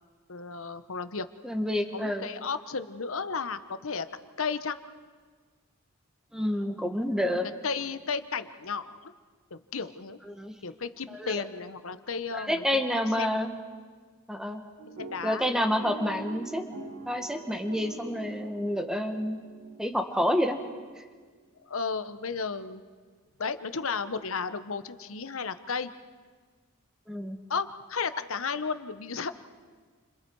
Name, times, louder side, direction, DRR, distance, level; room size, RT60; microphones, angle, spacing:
voice 1, 0.3-1.3 1.9-4.1 4.4-4.8 7.3-9.1 9.5-10.2 10.6-12.6 12.9-13.6 15.0-15.5 21.6-22.8 23.4-25.9 27.5-29.3, left 5 dB, 70° left, 11 dB, 1.0 m, -34 dB
voice 2, 1.4-2.3 6.3-7.4 10.3-10.5 11.1-11.4 12.3-13.5 14.3-14.6 15.2-16.7 17.1-19.4 19.8-20.6 27.1-27.4, equal, 5° right, 5 dB, 1.5 m, -28 dB
sound 1, 14.8-21.0, right 3 dB, 70° right, 3.5 m, -45 dB
29.5 x 26.0 x 4.8 m, 1.5 s
head